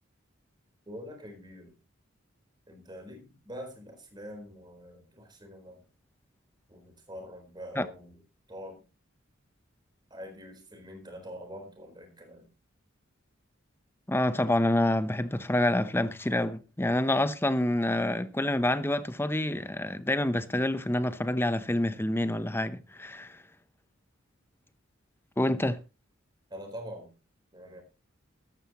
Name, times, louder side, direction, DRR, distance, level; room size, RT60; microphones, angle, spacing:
voice 1, 0.9-1.8 2.7-5.8 6.7-8.2 8.5-8.9 10.1-12.5 26.5-27.1 27.5-27.8, equal, 20° right, 4.1 m, -44 dB
voice 2, 14.1-23.4 25.4-25.8, left 1 dB, 10° left, 0.8 m, -27 dB
13.5 x 13.0 x 3.0 m
head